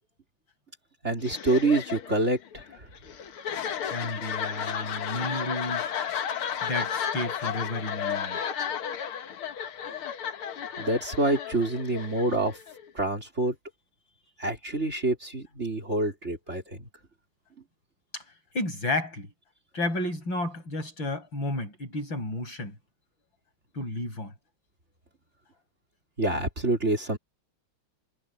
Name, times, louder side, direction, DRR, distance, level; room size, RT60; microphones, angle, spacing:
voice 1, 1.0-2.9 10.8-12.6 12.9-13.5 14.4-16.9 26.2-27.2, right 2 dB, 30° right, 4.3 m, -27 dB
sound 1, 1.2-12.9, left 8 dB, 90° left, 2.3 m, -33 dB
voice 2, 3.9-5.9 6.6-8.4 18.1-18.2 18.5-19.3 19.7-22.7 23.7-24.3, left 2 dB, 65° left, 8.2 m, -32 dB
omnidirectional pair, 2.3 m